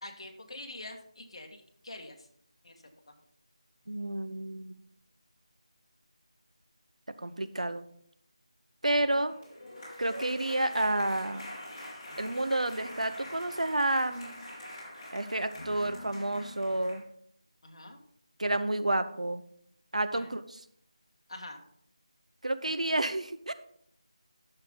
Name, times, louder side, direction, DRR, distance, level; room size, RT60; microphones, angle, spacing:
voice 1, 0.0-2.3 2.6-2.7 3.1-3.2 8.9-9.2 17.6-18.0 20.1-20.3 21.3-21.6, left 2 dB, 55° left, 3 dB, 1.6 m, -45 dB
voice 2, 3.9-4.7 7.2-7.8 8.8-9.3 10.0-11.5 12.2-14.4 15.1-17.0 18.4-19.4 19.9-20.4 22.4-23.5, right 1 dB, 85° right, 11 dB, 0.9 m, -30 dB
sound 1, 9.1-17.0, left 1 dB, 25° left, 3.9 m, -44 dB
11.5 x 6.8 x 4.0 m, 0.67 s
figure-of-eight pair, 170°, 4 cm